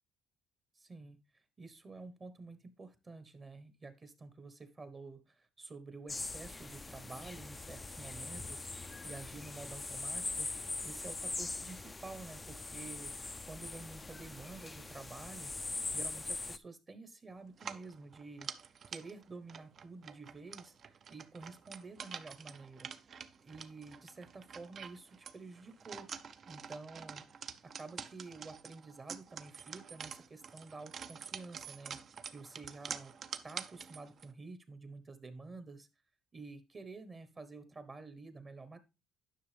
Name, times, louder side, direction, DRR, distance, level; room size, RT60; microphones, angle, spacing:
voice 1, 0.7-15.5 15.9-18.6 18.9-22.9 23.4-26.1 26.5-27.2 27.6-32.0 32.3-33.1 33.4-35.9 36.3-38.8, right 3 dB, 25° right, 11 dB, 1.0 m, -50 dB
sound 1, 6.1-16.6, left 3 dB, 15° left, 0.4 m, -42 dB
sound 2, 17.5-34.3, right 7 dB, 45° right, 0.6 m, -47 dB
10.0 x 5.9 x 3.3 m, 0.27 s
cardioid pair, 115°, 0 cm